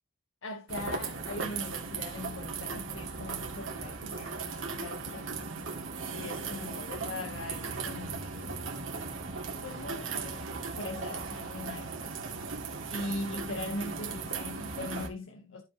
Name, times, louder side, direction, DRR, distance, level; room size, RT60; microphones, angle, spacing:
voice 1, 0.4-5.3 6.1-8.6 9.6-11.9 12.9-15.6, left 2 dB, 80° left, 1.3 m, -40 dB
sound 1, 0.7-15.1, right 4 dB, 90° right, 2.6 m, -37 dB
15.0 x 5.2 x 3.0 m
head